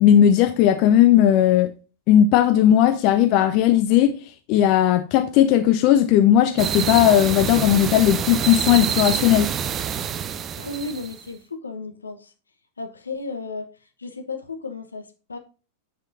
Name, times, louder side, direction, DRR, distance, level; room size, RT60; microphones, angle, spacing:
voice 1, 0.0-1.7 2.1-4.2 4.5-9.5, left 11 dB, 45° left, 0.5 m, -17 dB
sound 1, 6.6-11.2, right 8 dB, 25° right, 0.5 m, -27 dB
voice 2, 10.6-12.3 12.8-13.7 14.0-15.4, left 3 dB, 75° left, 1.1 m, -34 dB
7.4 x 6.4 x 2.6 m
figure-of-eight pair, 90°, 0 cm